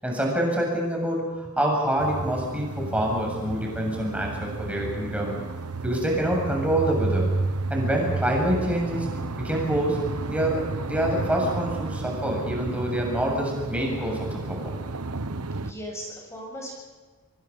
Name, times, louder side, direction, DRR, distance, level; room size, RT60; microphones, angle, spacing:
voice 1, 0.0-5.4 5.8-7.3 7.7-9.1 9.3-10.0 10.3-10.6 10.9-14.7, right 1 dB, 5° right, -1 dB, 7.6 m, -26 dB
sound 1, 2.0-15.7, right 3 dB, 85° right, 1.2 m, -32 dB
voice 2, 15.6-16.8, equal, 15° left, 0 dB, 7.3 m, -37 dB
26.5 x 23.5 x 5.5 m, 1.4 s
head